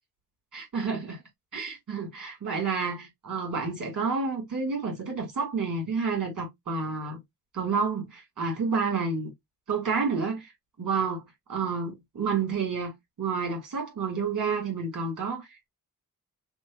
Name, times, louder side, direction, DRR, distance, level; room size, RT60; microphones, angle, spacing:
voice 1, 0.5-1.2 1.5-7.2 7.5-9.3 9.7-10.5 10.8-11.2 11.5-12.9 13.2-15.7, right 5 dB, 65° right, 2.1 m, -29 dB
5.9 x 2.2 x 2.3 m
wide cardioid pair, 95°, 34 cm